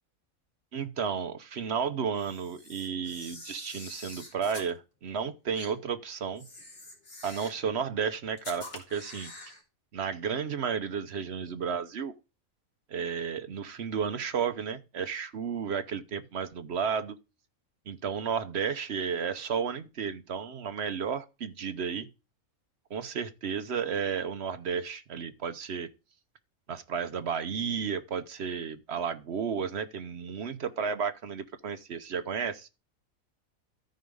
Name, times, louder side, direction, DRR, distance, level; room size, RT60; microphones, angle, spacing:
voice 1, 0.7-6.5 7.2-9.3 9.9-12.1 12.9-17.2 17.9-22.1 22.9-25.9 26.7-32.7, right 6 dB, 55° right, 1.0 m, -33 dB
Camera, 2.1-4.7 5.5-5.7 6.3-7.6 8.4-9.6, left 2 dB, 45° left, 2.7 m, -46 dB
13.5 x 4.8 x 5.4 m
omnidirectional pair, 1.5 m